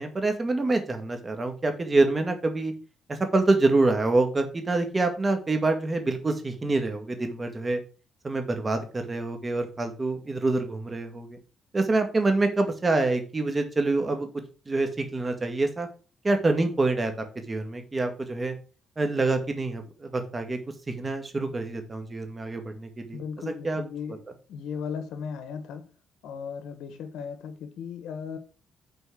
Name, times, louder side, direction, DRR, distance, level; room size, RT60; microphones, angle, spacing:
voice 1, 0.0-2.7 3.1-7.8 8.2-11.4 11.7-14.3 14.7-15.9 16.2-18.5 19.0-20.6 21.0-23.8, right 2 dB, 25° right, 1.9 m, -26 dB
voice 2, 23.1-24.2 24.5-25.8 26.2-28.4, left 6 dB, 85° left, 1.2 m, -36 dB
6.9 x 4.4 x 6.2 m
cardioid pair, 90°, 0 cm